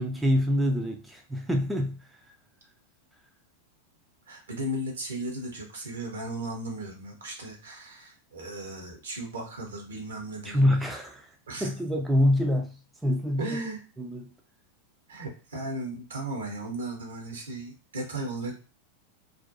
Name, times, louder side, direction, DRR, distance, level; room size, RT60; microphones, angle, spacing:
voice 1, 0.0-2.2 10.4-11.4 11.6-13.6 14.0-14.3, left 1 dB, 5° right, 0.3 m, -26 dB
voice 2, 4.3-10.6 11.5-11.7 13.4-13.8 15.1-18.6, right 1 dB, 70° right, 0.8 m, -36 dB
2.5 x 2.1 x 2.6 m
figure-of-eight pair, 90°, 0 cm